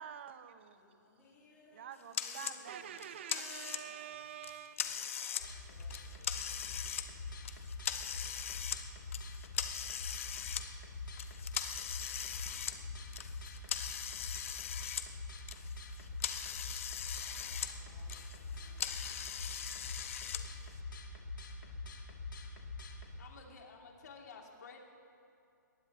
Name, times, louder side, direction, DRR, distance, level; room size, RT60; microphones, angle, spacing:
voice 1, 0.0-0.8 1.7-4.8, right 9 dB, 35° right, 11 dB, 0.8 m, -47 dB
voice 2, 0.7-2.8 3.1-4.2 4.8-7.5 9.2-9.3 12.3-14.5 17.1-20.5, left 1 dB, 15° left, -8 dB, 3.1 m, -65 dB
sound 1, 2.1-2.6 3.0-4.0 4.4-5.5 5.8-7.1 7.5-8.8 9.1-10.6 11.2-15.1 15.4-17.7 18.0-20.4, left 9 dB, 40° left, 0.9 m, -40 dB
sound 2, 5.4-23.2, left 3 dB, 85° left, 2.7 m, -45 dB
voice 3, 23.2-24.8, left 5 dB, 60° left, 0 dB, 2.7 m, -52 dB
22.5 x 19.0 x 3.0 m, 2.7 s
hypercardioid pair, 170°, 10 cm